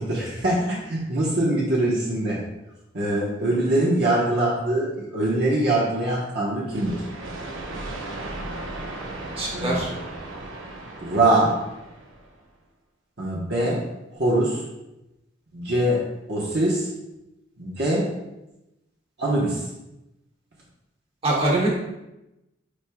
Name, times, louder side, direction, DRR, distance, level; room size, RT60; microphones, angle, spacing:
voice 1, 0.0-2.4 2.9-7.0 9.5-9.9 11.0-11.6 13.2-13.8 14.1-14.6 15.5-16.0 16.3-16.9 17.6-18.1 19.2-19.7, right 1 dB, 55° right, -5 dB, 1.1 m, -23 dB
sound 1, 6.7-12.4, right 2 dB, 80° right, 0.9 m, -36 dB
voice 2, 9.4-9.9 21.2-21.7, right 2 dB, 30° right, -4 dB, 1.6 m, -23 dB
8.7 x 5.0 x 2.3 m, 0.95 s
head